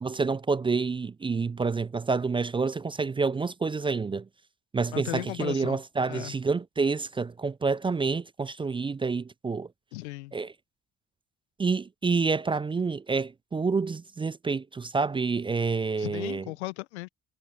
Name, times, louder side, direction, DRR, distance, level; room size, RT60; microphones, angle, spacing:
voice 1, 0.0-4.3 4.7-9.7 10.3-10.5 11.6-16.4, right 4 dB, 15° right, 0.4 m, -28 dB
voice 2, 4.9-5.8 6.1-6.3 9.9-10.3 16.0-17.1, left 22 dB, 90° left, 0.7 m, -36 dB
hypercardioid pair, 60°, 33 cm